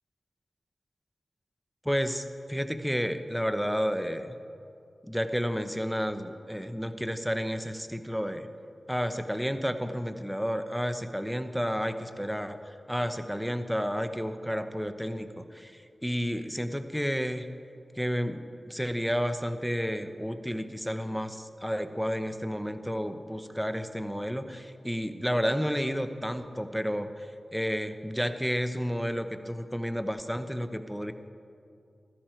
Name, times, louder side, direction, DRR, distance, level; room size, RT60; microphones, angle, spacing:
voice 1, 1.8-4.4 5.0-8.5 8.9-15.7 16.0-17.5 18.0-18.4 18.7-27.3 27.5-31.1, equal, ahead, 9 dB, 0.9 m, -31 dB
15.0 x 13.0 x 4.5 m, 2.5 s
cardioid pair, 45°, 0 cm